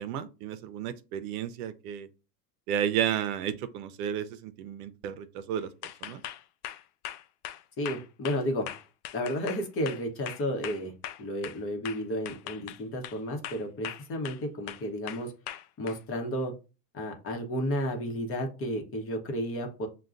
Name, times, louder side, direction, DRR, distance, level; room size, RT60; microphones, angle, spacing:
voice 1, 0.0-2.1 2.7-5.7 6.0-6.2, right 9 dB, 70° right, 0.6 m, -32 dB
sound 1, 5.8-11.6 11.8-13.2 13.4-14.4 14.7-16.0, left 12 dB, 75° left, 0.6 m, -40 dB
voice 2, 7.8-8.7 9.1-10.9 11.2-15.3 15.8-16.5 16.9-19.9, equal, 30° left, 0.9 m, -32 dB
6.5 x 2.2 x 2.5 m
supercardioid pair, 125°, 47 cm